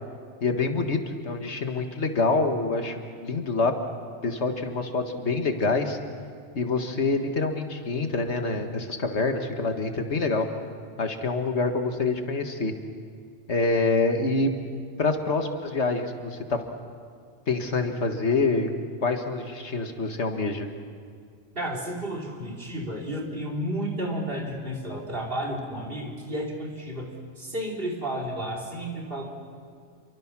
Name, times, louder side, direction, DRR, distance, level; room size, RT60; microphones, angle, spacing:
voice 1, 0.4-1.0 1.2-3.8 4.2-6.0 6.6-10.5 11.0-12.7 13.5-14.5 15.0-16.6 17.5-18.7 19.0-20.7, left 3 dB, 80° left, 5 dB, 2.0 m, -26 dB
voice 2, 21.6-27.1 27.4-29.3, right 1 dB, 55° right, -1 dB, 3.6 m, -32 dB
28.5 x 24.0 x 6.1 m, 2.1 s
omnidirectional pair, 1.1 m